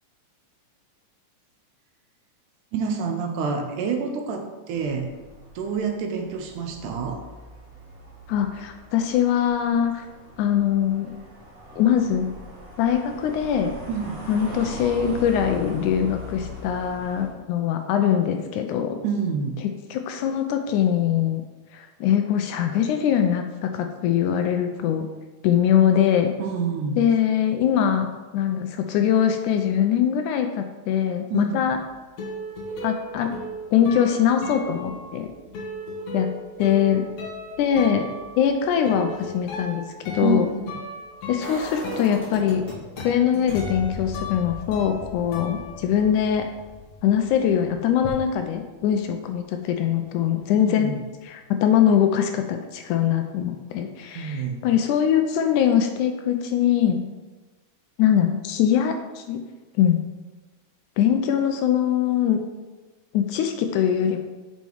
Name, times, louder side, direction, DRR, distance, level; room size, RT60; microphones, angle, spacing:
voice 1, 2.7-5.1 5.6-7.2 13.9-14.2 19.0-19.6 26.4-27.2 31.3-31.6 40.2-40.7 50.6-51.0 54.1-54.7, right 5 dB, 75° right, 3 dB, 2.2 m, -27 dB
sound 1, 4.7-17.3, left 1 dB, 30° right, 1.0 m, -41 dB
voice 2, 8.3-10.0 10.4-11.2 11.8-12.3 12.8-13.7 14.3-19.0 19.9-21.4 21.7-25.1 25.4-26.3 27.0-28.1 28.3-31.8 32.8-33.3 33.7-35.3 36.1-36.3 36.6-37.0 37.6-38.1 38.4-39.9 40.1-40.5 41.3-42.6 43.0-46.4 47.0-50.9 51.2-57.0 58.0-59.4 59.8-60.1 61.0-62.4 63.1-64.2, left 9 dB, 80° left, 5 dB, 1.9 m, -22 dB
sound 2, 31.6-46.4 46.7-48.1, left 1 dB, 65° left, 2.0 m, -37 dB
sound 3, 41.4-43.0 43.5-49.3 49.6-49.7, left 3 dB, 25° left, 2.3 m, -39 dB
7.0 x 4.3 x 4.6 m, 1.3 s
omnidirectional pair, 3.8 m